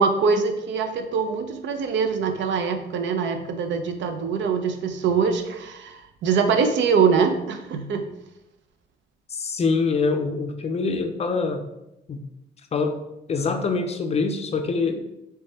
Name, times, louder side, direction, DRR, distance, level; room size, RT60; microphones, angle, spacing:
voice 1, 0.0-8.0, right 5 dB, 70° right, 7 dB, 0.5 m, -23 dB
voice 2, 9.3-11.6 12.1-12.2 12.7-13.0 13.3-15.1, left 4 dB, 30° left, 6 dB, 0.5 m, -24 dB
3.3 x 3.2 x 2.8 m, 0.89 s
cardioid pair, 90°, 20 cm